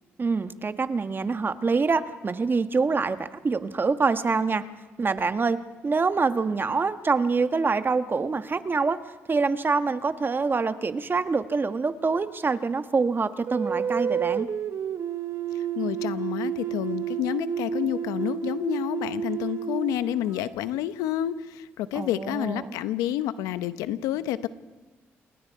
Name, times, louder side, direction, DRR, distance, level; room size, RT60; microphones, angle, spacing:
voice 1, 0.2-4.6 5.0-5.6 5.8-9.0 9.3-14.5 21.9-22.7, right 4 dB, 40° right, 10 dB, 1.5 m, -25 dB
sound 1, 13.5-20.8, right 8 dB, 60° right, 1.4 m, -30 dB
voice 2, 15.5-24.5, left 12 dB, 85° left, 13 dB, 0.8 m, -29 dB
28.0 x 20.5 x 4.8 m, 1.3 s
supercardioid pair, 55°, 6 cm